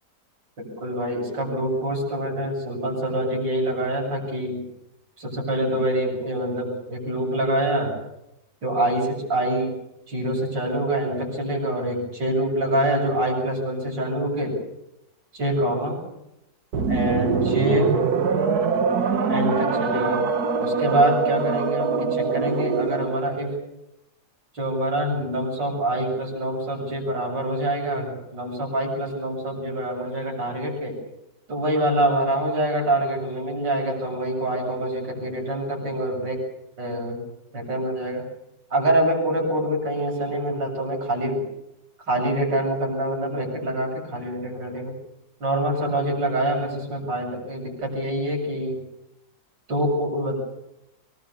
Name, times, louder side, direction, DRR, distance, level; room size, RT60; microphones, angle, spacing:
voice 1, 0.6-4.6 5.2-7.9 8.6-9.8 10.1-14.5 15.3-16.0 16.9-17.9 19.3-20.2 20.6-23.5 24.5-30.9 31.5-36.4 36.8-37.2 37.5-38.2 38.7-41.4 42.1-45.0 45.4-48.8 49.7-50.4, right 1 dB, 85° right, -2 dB, 8.4 m, -25 dB
sound 1, 16.7-23.2, right 5 dB, 60° right, 2.0 m, -23 dB
25.0 x 22.0 x 7.1 m, 0.87 s
omnidirectional pair, 1.9 m